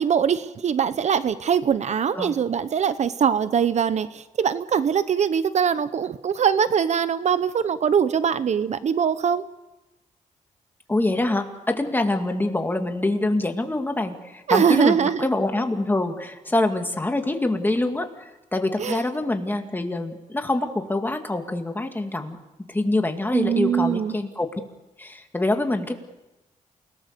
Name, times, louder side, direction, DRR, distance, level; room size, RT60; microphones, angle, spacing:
voice 1, 0.0-9.4 14.5-15.2 18.8-19.0 23.3-24.2, right 7 dB, 55° right, 14 dB, 0.7 m, -22 dB
voice 2, 10.9-22.4 22.7-24.5 25.0-26.0, left 2 dB, 15° left, 5 dB, 2.3 m, -25 dB
29.0 x 18.5 x 6.8 m, 1.0 s
cardioid pair, 115°, 14 cm